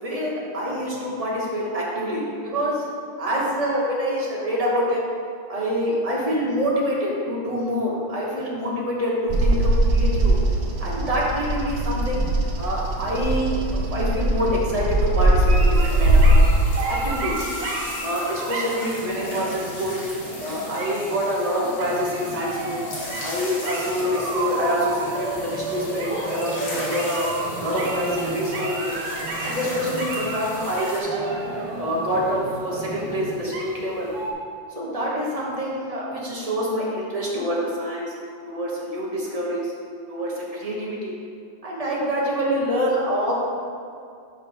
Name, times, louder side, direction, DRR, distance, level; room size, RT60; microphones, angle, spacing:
voice 1, 0.0-2.9 3.2-5.1 5.5-9.1 9.4-10.4 10.8-12.2 12.6-16.5 16.8-17.5 18.0-20.0 20.4-22.8 23.2-27.3 27.6-29.0 29.4-31.3 31.8-34.1 34.7-38.1 38.5-39.7 40.1-41.2 41.6-43.3, equal, 30° right, -5 dB, 0.7 m, -26 dB
Bird vocalization bird call bird song, 9.3-16.6, right 1 dB, 60° right, 1.0 m, -20 dB
sound 1, 15.3-34.3, right 2 dB, 85° right, 1.8 m, -32 dB
sound 2, 15.5-31.0, left 1 dB, 75° left, 2.4 m, -37 dB
5.6 x 5.4 x 5.2 m, 2.4 s
omnidirectional pair, 2.3 m